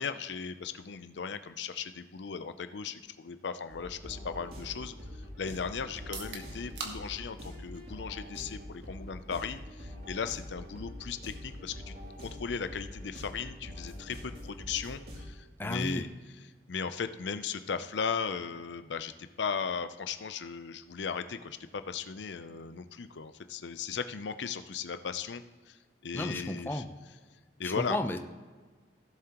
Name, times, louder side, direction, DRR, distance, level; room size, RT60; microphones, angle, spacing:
voice 1, 0.0-5.0 5.4-16.1 16.7-26.8 27.6-28.0, left 6 dB, 75° left, 10 dB, 0.5 m, -37 dB
sound 1, 3.7-15.3, left 1 dB, 55° right, 2.9 m, -44 dB
sound 2, 6.0-19.8, right 4 dB, 75° right, 1.5 m, -52 dB
voice 2, 15.6-16.0 26.1-26.9 27.6-28.2, left 1 dB, 10° left, 6 dB, 0.6 m, -33 dB
16.5 x 7.5 x 3.0 m, 1.4 s
head